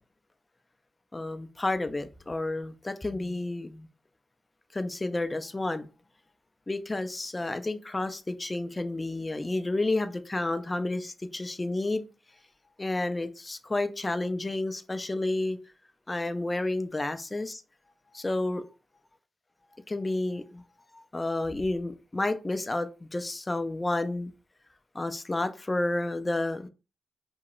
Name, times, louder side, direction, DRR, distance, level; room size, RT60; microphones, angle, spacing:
voice 1, 1.1-3.9 4.7-5.9 6.7-12.0 12.8-15.6 16.1-17.6 18.1-18.6 19.7-20.6 20.9-24.3 24.9-26.7, left 2 dB, 25° left, 0.4 m, -31 dB
2.9 x 2.7 x 2.4 m
supercardioid pair, 45°, 0 cm